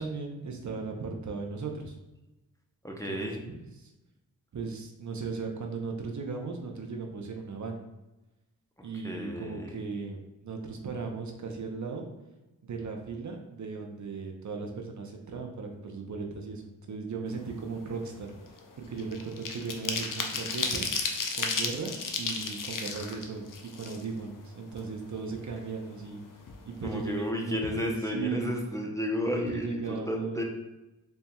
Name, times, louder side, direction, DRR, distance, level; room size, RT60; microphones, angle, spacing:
voice 1, 0.0-2.0 3.0-3.9 4.5-7.9 8.8-12.1 12.6-18.3 18.9-20.9 21.3-26.3 26.7-28.5 29.3-30.4, right 4 dB, 55° right, 2 dB, 0.7 m, -37 dB
voice 2, 2.8-3.4 8.8-9.8 26.8-30.4, left 1 dB, 10° left, 0 dB, 0.7 m, -33 dB
sound 1, 17.4-17.6 18.0-24.4 24.8-24.9 25.2-26.2 26.5-26.6 26.9-27.2, left 4 dB, 60° left, 0.6 m, -33 dB
4.1 x 3.4 x 2.2 m, 1.0 s
cardioid pair, 45°, 36 cm